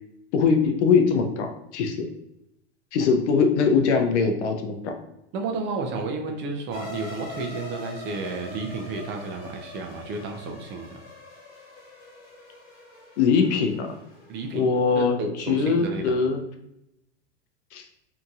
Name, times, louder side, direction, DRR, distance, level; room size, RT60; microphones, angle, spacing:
voice 1, 0.3-2.1 2.9-4.9 13.2-14.0 14.5-16.4 17.7-17.8, left 5 dB, 75° left, 6 dB, 0.6 m, -22 dB
voice 2, 5.3-11.0 14.3-14.7 14.9-16.0, right 3 dB, 35° right, 3 dB, 0.4 m, -32 dB
sound 1, 6.7-14.6, left 3 dB, 25° left, 1.2 m, -43 dB
2.8 x 2.6 x 2.3 m, 0.85 s
hypercardioid pair, 115°, 35 cm